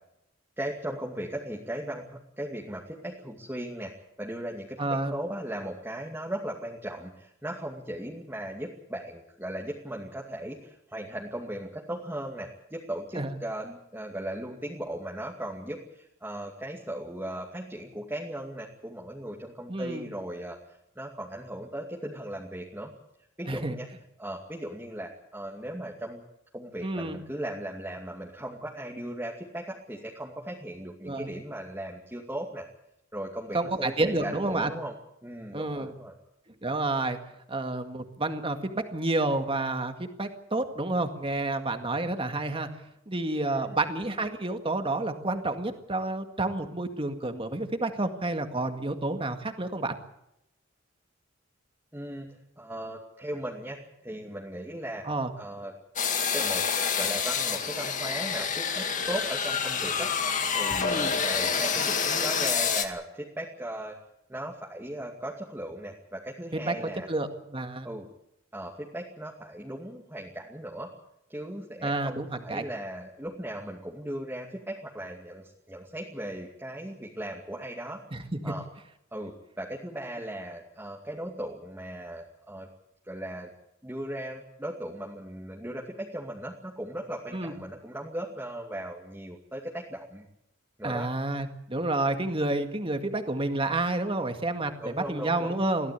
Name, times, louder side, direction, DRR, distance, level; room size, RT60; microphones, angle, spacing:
voice 1, 0.6-22.9 23.4-23.9 24.2-26.2 26.5-32.7 33.1-34.9 35.2-36.1 43.5-43.8 51.9-55.0 55.4-55.7 56.3-56.6 56.9-64.0 64.3-67.1 67.8-68.1 68.5-70.9 71.3-78.0 78.4-78.6 79.1-82.7 83.0-83.5 83.8-90.2 90.8-91.1 94.8-95.6, right 1 dB, 10° right, -1 dB, 2.4 m, -37 dB
voice 2, 4.8-5.1 13.1-13.3 19.7-20.0 23.5-23.8 26.8-27.2 31.0-31.3 33.5-34.7 35.5-35.9 36.6-37.2 37.5-42.7 43.1-49.9 55.0-55.3 60.8-61.1 66.5-66.8 67.1-67.9 71.8-72.7 78.1-78.4 87.3-87.5 90.8-95.9, right 2 dB, 25° right, 6 dB, 2.0 m, -29 dB
sound 1, 56.0-62.9, left 6 dB, 40° left, 2.1 m, -28 dB
23.5 x 16.0 x 8.3 m, 0.82 s
head